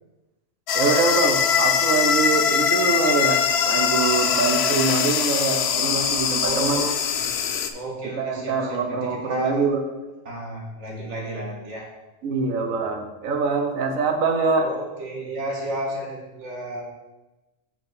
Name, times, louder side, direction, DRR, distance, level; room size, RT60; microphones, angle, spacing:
sound 1, 0.7-7.7, left 7 dB, 60° left, 0.7 m, -22 dB
voice 1, 0.7-6.8 8.2-9.8 12.2-14.7, right 4 dB, 80° right, 4 dB, 1.3 m, -24 dB
voice 2, 6.4-7.4 7.7-9.6 10.3-11.9 14.6-16.8, right 1 dB, 60° right, -3 dB, 2.1 m, -32 dB
6.1 x 6.0 x 4.3 m, 1.1 s
omnidirectional pair, 1.4 m